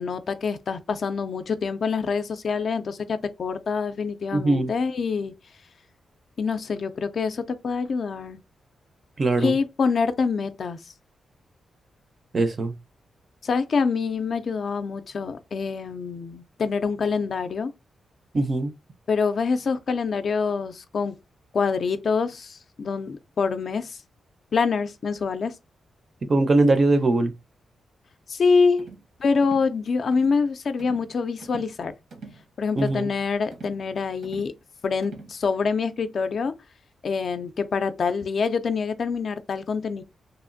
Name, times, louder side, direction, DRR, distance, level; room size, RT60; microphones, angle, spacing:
voice 1, 0.0-5.3 6.4-8.4 9.4-10.8 13.4-17.7 19.1-21.2 21.5-24.0 24.5-25.5 28.3-28.9 29.2-31.9 32.6-34.5 34.8-36.5 37.0-40.0, left 5 dB, 55° left, 0.3 m, -25 dB
voice 2, 4.3-4.7 9.2-9.6 12.3-12.7 18.3-18.7 26.3-27.3 32.8-33.1, right 2 dB, 35° right, 0.5 m, -21 dB
sound 1, 28.8-29.1 29.4-29.7 30.1-30.4 30.8-31.1 31.4-31.8 32.1-32.4 32.8-33.1 33.5-33.8 34.2-34.6 35.0-35.4, right 3 dB, 70° right, 0.9 m, -43 dB
2.9 x 2.4 x 2.5 m
wide cardioid pair, 120°, 0 cm